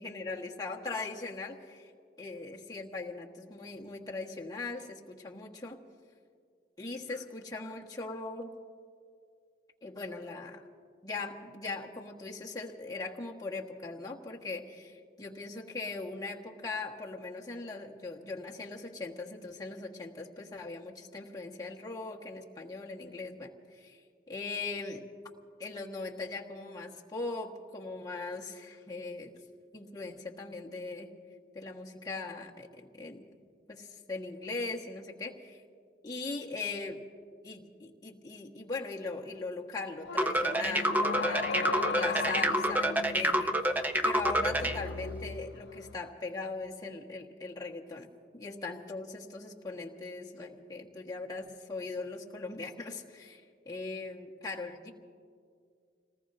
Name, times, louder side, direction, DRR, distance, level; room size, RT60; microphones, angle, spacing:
voice 1, 0.0-1.9 2.2-5.8 6.8-8.5 9.8-10.7 11.0-24.0 24.3-25.1 25.6-29.3 29.7-31.1 31.5-33.4 33.7-35.6 36.0-37.0 37.4-43.8 44.0-48.1 48.3-54.9, left 3 dB, 20° left, -2 dB, 1.4 m, -40 dB
sound 1, 40.0-46.1, left 4 dB, 80° left, 0.5 m, -38 dB
sound 2, 40.2-44.8, right 1 dB, 10° right, 0.6 m, -28 dB
28.5 x 19.0 x 2.6 m, 2.2 s
head